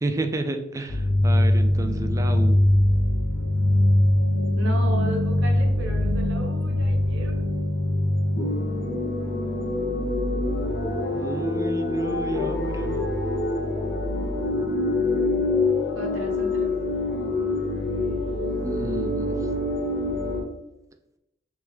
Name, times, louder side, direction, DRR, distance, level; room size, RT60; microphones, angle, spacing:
voice 1, 0.0-2.6 11.1-13.0 18.6-19.4, right 2 dB, 15° right, 6 dB, 0.3 m, -31 dB
sound 1, 0.9-20.4, left 1 dB, 65° left, 0.8 m, -23 dB
voice 2, 4.6-7.5 15.9-16.7, right 1 dB, 85° right, 1 dB, 0.9 m, -34 dB
3.4 x 3.1 x 3.3 m, 0.89 s
head